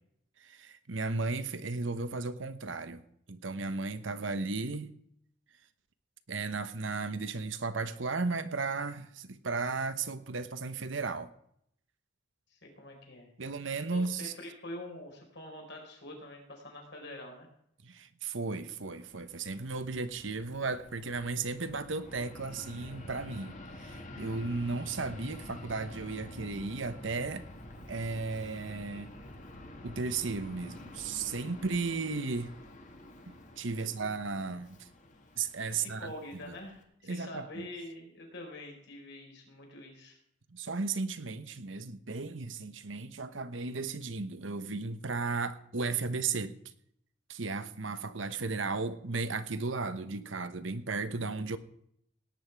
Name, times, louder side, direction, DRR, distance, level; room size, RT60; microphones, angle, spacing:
voice 1, 0.4-3.0 3.3-4.9 6.3-11.3 13.4-14.3 17.8-27.4 27.9-29.1 29.8-32.5 33.3-34.9 35.4-36.1 36.4-36.5 37.1-37.7 40.5-46.6 47.3-51.6, right 4 dB, 75° right, 11 dB, 1.1 m, -35 dB
voice 2, 12.5-13.3 13.9-17.5 33.8-33.9 35.7-40.2, left 1 dB, 60° left, 2 dB, 4.6 m, -45 dB
Fixed-wing aircraft airplane, 19.0-36.8, left 1 dB, 40° left, 2.1 m, -48 dB
18.0 x 9.5 x 4.7 m, 0.69 s
head